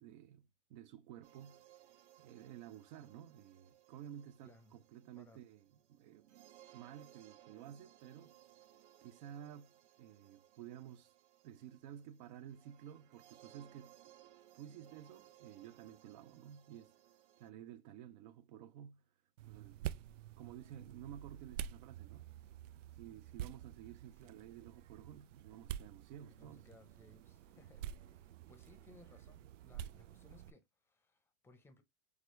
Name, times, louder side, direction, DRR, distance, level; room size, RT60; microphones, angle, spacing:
voice 1, 0.0-1.6 2.2-6.3 6.7-8.3 9.0-9.7 10.0-11.1 11.4-14.0 14.5-16.9 17.4-19.0 19.4-20.1 20.4-22.3 22.9-26.6, right 10 dB, 40° right, 0.5 m, -53 dB
sound 1, 1.2-17.5, right 13 dB, 65° right, 1.0 m, -64 dB
voice 2, 4.4-4.7 5.2-5.4 24.2-24.4 26.4-31.8, left 2 dB, 5° left, 0.7 m, -64 dB
sound 2, 19.4-30.5, right 10 dB, 85° right, 0.5 m, -48 dB
6.3 x 2.3 x 3.1 m
supercardioid pair, 145°, 37 cm